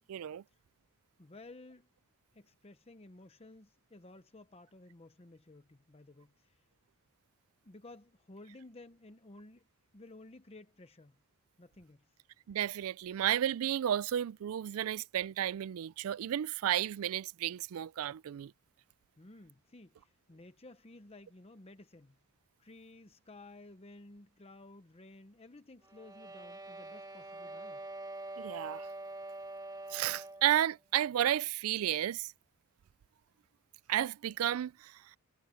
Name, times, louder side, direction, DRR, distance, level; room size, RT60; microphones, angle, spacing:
voice 1, 0.1-0.4 12.5-18.5 28.4-28.9 29.9-32.3 33.9-35.2, right 11 dB, 70° right, 0.3 m, -32 dB
voice 2, 1.2-1.9 2.3-6.6 7.6-9.7 9.9-11.2 11.6-12.1 19.2-22.2 22.6-27.8, left 2 dB, 25° left, 0.9 m, -54 dB
sound 1, 25.8-30.6, right 2 dB, 15° right, 1.9 m, -45 dB
head